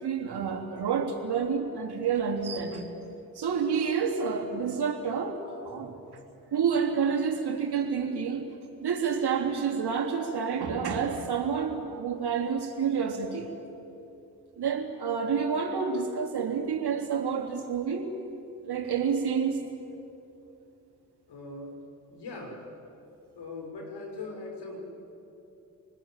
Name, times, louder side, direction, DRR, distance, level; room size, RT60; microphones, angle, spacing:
voice 1, 0.0-2.9 3.4-6.0 6.5-8.5 8.8-13.5 14.6-18.1 18.6-19.6, right 6 dB, 60° right, 3 dB, 3.4 m, -29 dB
voice 2, 21.3-21.8 22.1-22.6 23.4-24.8, left 3 dB, 60° left, 2 dB, 6.1 m, -40 dB
27.5 x 20.0 x 9.1 m, 2.8 s
hypercardioid pair, 45°, 45 cm